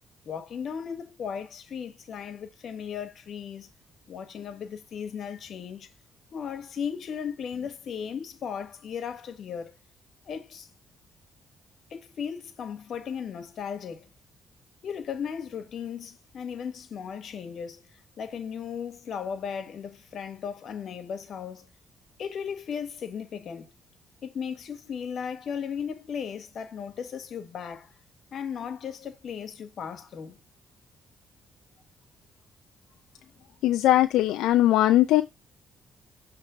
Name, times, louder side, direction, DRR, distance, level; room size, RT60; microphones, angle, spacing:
voice 1, 0.2-3.7 4.1-5.9 6.3-9.7 10.3-10.7 11.9-14.1 14.8-17.8 18.2-21.7 22.2-23.7 24.2-27.9 28.3-30.4 33.2-33.3, left 7 dB, 60° left, 1.4 m, -36 dB
voice 2, 33.6-35.2, left 14 dB, 90° left, 0.4 m, -20 dB
6.7 x 3.3 x 5.1 m
cardioid pair, 90°, 0 cm